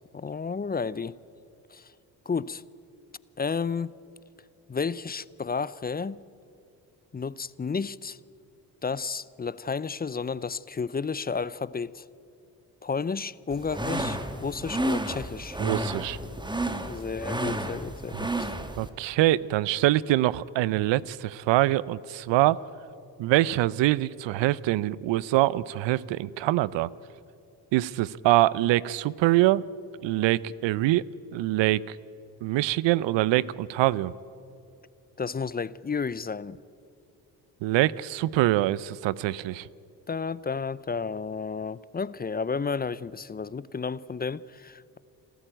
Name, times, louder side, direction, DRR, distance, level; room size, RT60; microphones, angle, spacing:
voice 1, 0.1-1.2 1.7-1.9 2.3-2.6 3.4-3.9 4.7-6.2 7.1-8.2 8.8-12.0 12.8-15.6 16.9-18.5 35.2-36.6 40.1-45.0, left 5 dB, 20° left, 0.6 m, -32 dB
sound 1, 13.5-18.9, right 1 dB, 10° right, 1.8 m, -31 dB
voice 2, 15.6-16.2 18.2-18.3 18.8-22.6 23.2-26.9 27.7-29.6 30.0-31.0 31.3-32.0 32.4-34.1 37.6-39.7, right 16 dB, 70° right, 0.7 m, -24 dB
28.5 x 13.5 x 9.0 m
hypercardioid pair, 55°, 46 cm